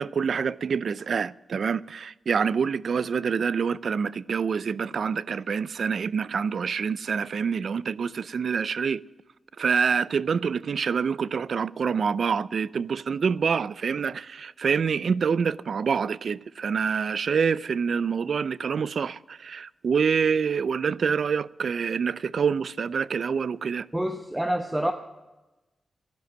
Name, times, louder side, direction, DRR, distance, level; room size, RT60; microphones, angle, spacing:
voice 1, 0.0-9.0 9.6-23.9, right 6 dB, 70° right, 0.4 m, -26 dB
voice 2, 23.9-24.9, right 1 dB, 10° right, 1.0 m, -27 dB
12.0 x 10.5 x 7.4 m
cardioid pair, 55°, 0 cm